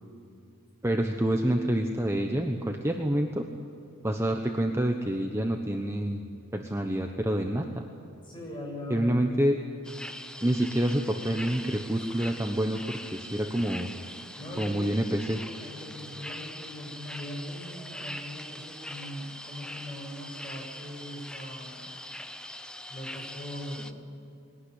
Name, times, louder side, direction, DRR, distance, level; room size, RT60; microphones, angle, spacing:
voice 1, 0.8-3.5 4.0-6.2 6.5-7.8 8.9-9.6 10.4-13.9 14.6-15.4, right 1 dB, 10° right, 3 dB, 1.1 m, -27 dB
voice 2, 8.2-9.3 14.3-14.9 15.6-21.8 22.9-24.0, left 1 dB, 20° left, -2 dB, 7.3 m, -40 dB
sound 1, 9.8-23.9, left 1 dB, 5° left, 0.7 m, -42 dB
21.5 x 18.5 x 9.9 m, 2.7 s
head